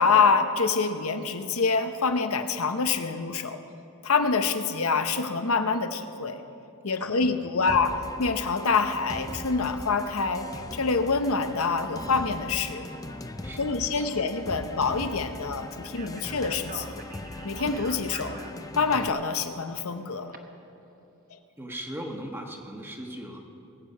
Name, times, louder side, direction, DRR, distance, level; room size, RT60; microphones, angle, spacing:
voice 1, 0.0-3.6 4.0-6.4 6.8-12.9 13.6-17.0 17.4-18.4 18.8-20.3, left 4 dB, 75° left, 8 dB, 0.8 m, -26 dB
voice 2, 7.0-7.7 13.4-14.2 21.6-23.4, right 1 dB, 10° right, 2 dB, 1.3 m, -39 dB
sound 1, 7.7-19.1, left 1 dB, 15° left, 0.5 m, -40 dB
Speech, 15.8-20.4, right 3 dB, 40° right, 1.0 m, -45 dB
21.0 x 8.5 x 5.5 m, 2.9 s
head